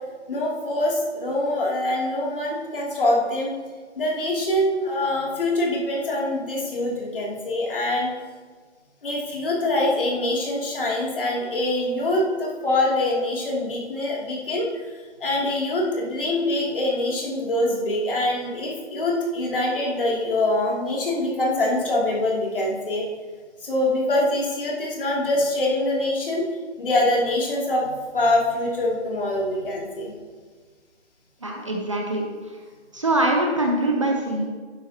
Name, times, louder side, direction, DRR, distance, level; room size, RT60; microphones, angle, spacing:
voice 1, 0.3-3.5 4.0-8.1 9.0-14.7 15.2-23.1 23.6-26.5 26.8-30.1, left 1 dB, 50° left, -3 dB, 2.9 m, -24 dB
voice 2, 31.4-32.6 32.9-34.5, right 1 dB, 25° right, 1 dB, 0.8 m, -23 dB
11.5 x 10.0 x 2.9 m, 1.5 s
hypercardioid pair, 170°, 35 cm